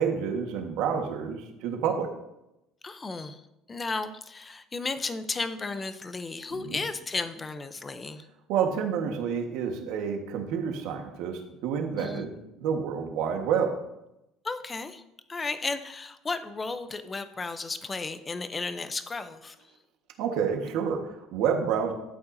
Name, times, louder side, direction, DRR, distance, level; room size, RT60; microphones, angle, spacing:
voice 1, 0.0-2.1 6.5-6.8 8.5-13.7 20.2-21.9, right 7 dB, 75° right, 3 dB, 1.4 m, -29 dB
voice 2, 2.8-3.4 3.7-8.3 12.0-12.3 14.4-15.0 15.3-19.6, left 3 dB, 20° left, 10 dB, 0.6 m, -34 dB
11.5 x 8.4 x 2.7 m, 0.89 s
cardioid pair, 135°, 0 cm